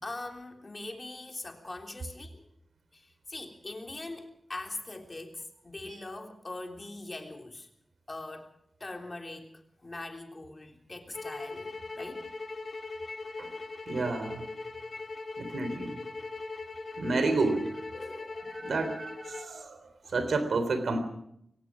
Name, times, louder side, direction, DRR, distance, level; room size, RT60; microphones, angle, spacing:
voice 1, 0.0-2.5 2.9-3.0 3.3-7.7 8.1-8.5 8.8-9.5 9.8-12.2 17.9-18.4 20.0-20.1, left 2 dB, 35° left, 3 dB, 3.5 m, -42 dB
sound 1, 11.1-19.5, left 3 dB, 55° left, 2.4 m, -40 dB
voice 2, 13.9-14.4 15.4-16.0 17.0-17.8 18.5-19.8 20.1-21.0, right 3 dB, 80° right, 10 dB, 3.7 m, -30 dB
23.0 x 18.0 x 6.3 m, 0.73 s
wide cardioid pair, 85°, 0 cm